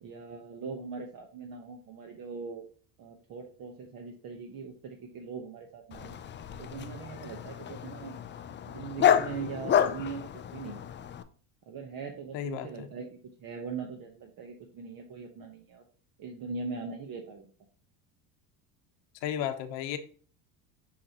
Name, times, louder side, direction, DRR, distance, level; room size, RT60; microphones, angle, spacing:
voice 1, 0.0-2.7 3.0-6.1 6.6-8.2 8.7-10.9 11.7-15.8 16.2-17.5, right 5 dB, 45° right, 3 dB, 1.1 m, -41 dB
Dog, 5.9-11.2, left 9 dB, 25° left, 0.4 m, -30 dB
voice 2, 12.3-12.9 19.2-20.0, left 10 dB, 65° left, 9 dB, 1.0 m, -33 dB
6.3 x 5.7 x 2.9 m, 0.43 s
cardioid pair, 115°, 47 cm